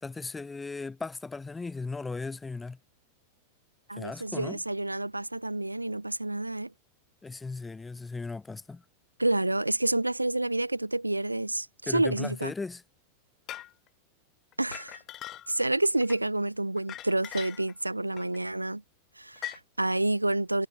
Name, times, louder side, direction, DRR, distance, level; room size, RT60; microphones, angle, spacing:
voice 1, 0.0-2.8 3.9-4.6 7.2-8.8 11.9-12.8, left 3 dB, 10° left, 2.2 m, -37 dB
voice 2, 3.9-6.7 9.2-12.5 14.6-15.0 15.5-18.8 19.2-20.7, right 2 dB, 85° right, 0.3 m, -29 dB
sound 1, 13.5-13.7 14.5-15.7 16.0-16.2 16.8-17.7 18.2-18.4 19.4-19.6, left 13 dB, 35° left, 0.9 m, -41 dB
figure-of-eight pair, 90°, 0 cm